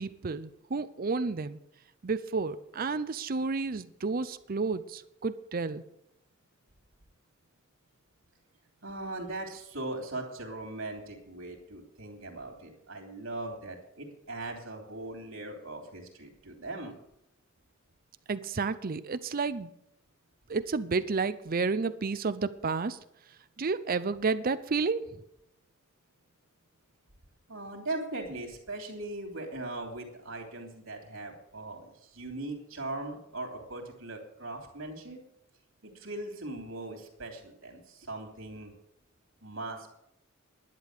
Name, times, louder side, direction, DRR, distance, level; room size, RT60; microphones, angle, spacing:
voice 1, 0.0-1.6 2.0-5.8 18.3-19.7 20.5-23.0 23.6-25.0, right 4 dB, 45° right, 13 dB, 0.6 m, -31 dB
voice 2, 8.8-17.0 27.5-35.2 35.8-38.7 39.4-40.0, right 2 dB, 75° right, 2 dB, 3.1 m, -39 dB
11.5 x 10.0 x 6.6 m, 0.80 s
head